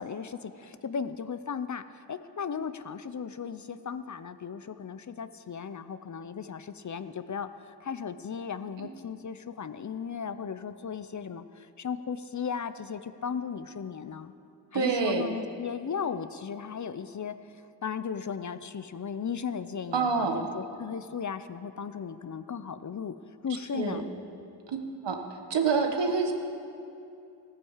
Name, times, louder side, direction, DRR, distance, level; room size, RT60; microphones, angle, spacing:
voice 1, 0.0-14.3 14.7-23.1 23.4-24.1, left 6 dB, 45° left, 12 dB, 0.6 m, -36 dB
voice 2, 14.7-15.2 19.9-20.4 23.7-24.0 24.7-24.8 25.0-25.2 25.5-26.3, right 5 dB, 90° right, 4 dB, 1.3 m, -26 dB
15.5 x 9.6 x 7.3 m, 2.6 s
cardioid pair, 65°, 42 cm